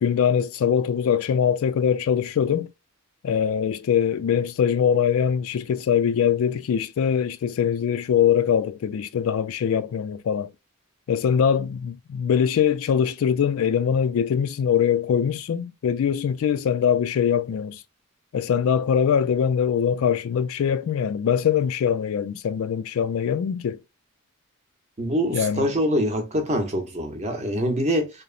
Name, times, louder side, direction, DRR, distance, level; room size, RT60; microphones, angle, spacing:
voice 1, 0.0-2.7 3.2-10.5 11.1-17.8 18.3-23.8 25.3-25.7, left 8 dB, 65° left, 0.3 m, -22 dB
voice 2, 25.0-28.1, equal, 30° right, 0.7 m, -24 dB
2.9 x 2.0 x 2.4 m
head